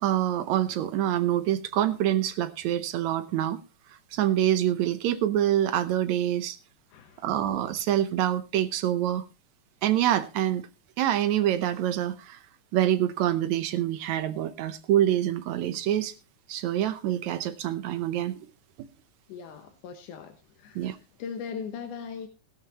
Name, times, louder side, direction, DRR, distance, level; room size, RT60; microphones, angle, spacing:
voice 1, 0.0-3.6 3.9-6.6 7.2-9.2 9.8-10.7 11.0-12.4 12.7-16.1 16.5-18.5 18.8-18.9 20.8-21.0, right 12 dB, 75° right, 2.0 m, -26 dB
voice 2, 6.9-7.2 19.3-20.9 21.2-22.3, left 6 dB, 85° left, 2.7 m, -39 dB
16.0 x 12.5 x 2.9 m
omnidirectional pair, 3.5 m